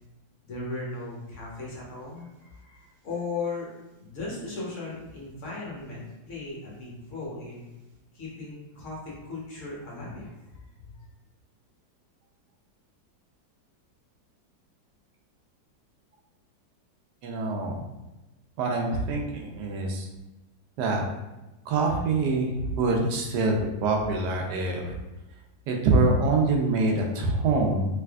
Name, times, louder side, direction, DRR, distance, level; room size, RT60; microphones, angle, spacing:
voice 1, 0.4-3.7 4.0-7.6 8.1-11.1, left 3 dB, 55° left, -4 dB, 0.9 m, -37 dB
voice 2, 17.2-17.8 18.6-20.1 20.8-21.0 21.7-25.0 25.7-27.9, right 3 dB, 70° right, 1 dB, 1.1 m, -25 dB
3.3 x 3.3 x 2.3 m, 1.0 s
omnidirectional pair, 2.1 m